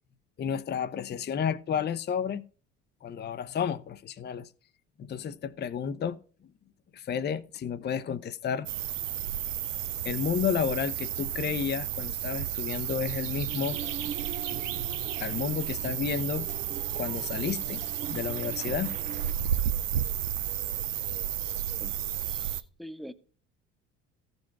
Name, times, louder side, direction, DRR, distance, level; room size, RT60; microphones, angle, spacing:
voice 1, 0.4-2.4 3.0-4.5 5.0-6.2 6.9-8.7 10.0-13.8 15.2-16.5 17.0-17.8 18.1-19.0, left 7 dB, 30° left, 0.7 m, -31 dB
sound 1, 8.7-22.6, right 10 dB, 90° right, 0.7 m, -32 dB
sound 2, 13.4-19.3, right 8 dB, 20° right, 0.3 m, -42 dB
voice 2, 21.8-23.1, equal, ahead, 1.0 m, -45 dB
14.5 x 5.3 x 4.6 m
hypercardioid pair, 65°, 36 cm